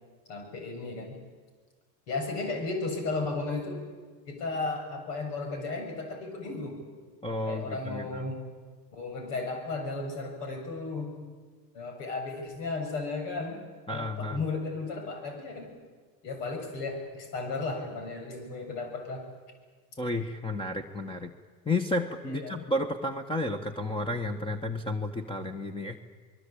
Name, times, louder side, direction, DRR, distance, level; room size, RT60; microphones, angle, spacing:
voice 1, 0.3-1.2 2.1-3.8 4.3-6.8 7.5-8.5 8.9-11.2 11.7-13.6 13.9-15.7 16.2-19.3 22.2-22.6, left 3 dB, 80° left, 4 dB, 7.6 m, -34 dB
voice 2, 7.2-8.3 13.9-14.4 20.0-21.3 21.6-26.0, left 2 dB, 10° left, 8 dB, 1.5 m, -32 dB
26.0 x 21.0 x 8.7 m, 1.5 s
supercardioid pair, 100°, 48 cm